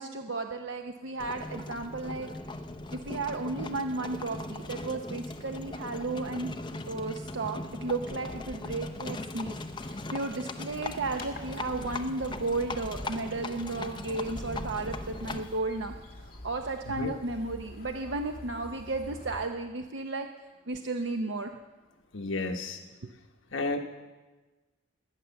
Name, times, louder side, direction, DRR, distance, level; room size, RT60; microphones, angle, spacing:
voice 1, 0.0-2.3 2.9-6.5 6.9-15.9 16.4-20.3 20.7-21.6 23.0-23.1, right 3 dB, 65° right, 5 dB, 0.7 m, -34 dB
Livestock farm animals working animals, 1.2-15.6, left 2 dB, 20° left, 0.7 m, -39 dB
sound 1, 10.7-19.5, left 1 dB, 45° left, 2.3 m, -47 dB
voice 2, 22.1-22.8 23.5-23.8, left 2 dB, 75° left, 4 dB, 1.1 m, -31 dB
20.5 x 9.1 x 7.0 m, 1.2 s
head